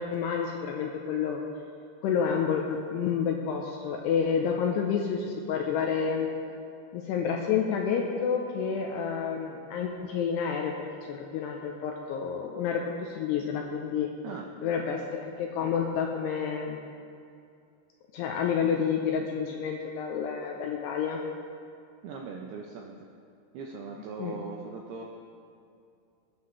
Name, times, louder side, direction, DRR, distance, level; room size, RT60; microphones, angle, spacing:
voice 1, 0.0-1.4 2.0-6.3 6.9-14.1 14.6-16.8 18.1-21.2 24.2-24.4, left 7 dB, 85° left, 1 dB, 2.4 m, -29 dB
voice 2, 22.0-23.1 23.5-25.0, right 5 dB, 85° right, 0 dB, 2.3 m, -40 dB
19.5 x 9.9 x 3.2 m, 2.5 s
omnidirectional pair, 5.5 m